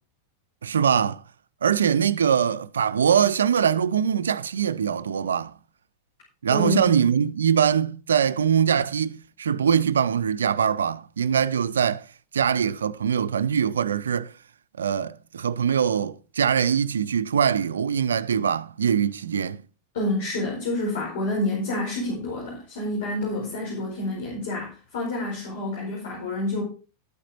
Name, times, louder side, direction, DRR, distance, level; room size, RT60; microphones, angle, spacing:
voice 1, 0.6-1.2 1.6-5.5 6.4-12.1 12.3-14.3 14.8-19.6, right 8 dB, 70° right, 0.5 m, -23 dB
voice 2, 6.5-6.9 19.9-26.6, left 1 dB, 55° left, 4.8 m, -28 dB
12.5 x 9.0 x 4.4 m
figure-of-eight pair, 90°, 0 cm